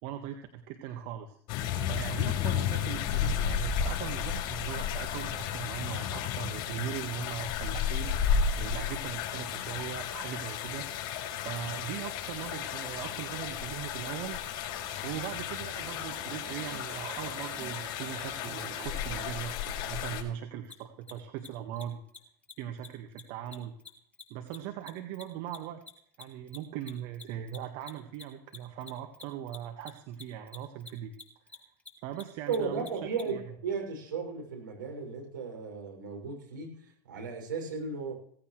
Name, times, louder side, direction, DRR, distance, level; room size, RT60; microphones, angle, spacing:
voice 1, 0.0-1.4 1.9-8.1 8.6-10.9 11.4-14.4 15.0-22.0 22.6-23.7 24.3-25.8 26.2-31.1 31.5-31.6 32.0-32.9 33.3-33.4, right 10 dB, 60° right, 5 dB, 1.7 m, -40 dB
sound 1, 1.5-20.2, left 8 dB, 50° left, 4.2 m, -33 dB
sound 2, 10.7-19.2, right 7 dB, 40° right, 2.5 m, -52 dB
Mechanisms, 20.6-20.7 21.0-21.1 21.4-21.5 21.7-21.8 22.1-22.2 22.4-22.5 22.8-22.9 23.2-25.9 26.1-33.2, left 4 dB, 15° left, 3.3 m, -47 dB
voice 2, 32.5-38.1, right 5 dB, 85° right, 2 dB, 6.8 m, -35 dB
17.5 x 15.0 x 3.3 m, 0.62 s
hypercardioid pair, 85°, 11 cm